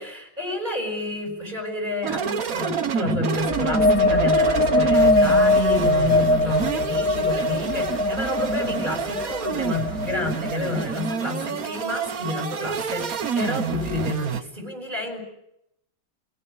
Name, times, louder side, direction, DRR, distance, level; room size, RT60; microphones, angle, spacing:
voice 1, 0.0-15.2, left 2 dB, 20° right, 2 dB, 7.7 m, -30 dB
sound 1, 2.0-14.4, right 6 dB, 50° right, 1.6 m, -27 dB
sound 2, 3.4-11.0, left 2 dB, 40° left, 1.7 m, -22 dB
28.0 x 19.0 x 9.8 m, 0.81 s
omnidirectional pair, 2.2 m